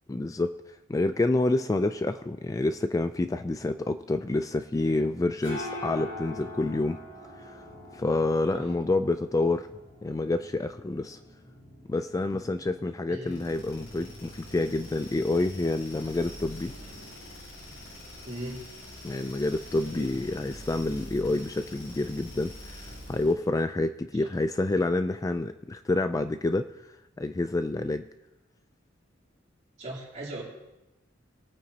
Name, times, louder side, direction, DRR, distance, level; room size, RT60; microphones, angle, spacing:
voice 1, 0.1-0.6 0.9-7.0 7.4-7.6 7.9-9.7 10.0-11.2 11.9-16.8 19.0-22.8 23.1-26.7 27.2-28.1, left 2 dB, 20° left, 9 dB, 0.3 m, -28 dB
sound 1, 5.0-22.5, left 1 dB, 45° left, 3.1 m, -46 dB
sound 2, 13.3-23.4, equal, 75° left, 4.9 m, -44 dB
voice 2, 18.2-18.6 19.7-20.1 24.2-24.3 29.8-30.4, right 1 dB, 35° right, -4 dB, 3.1 m, -38 dB
21.5 x 9.2 x 2.8 m, 0.99 s
head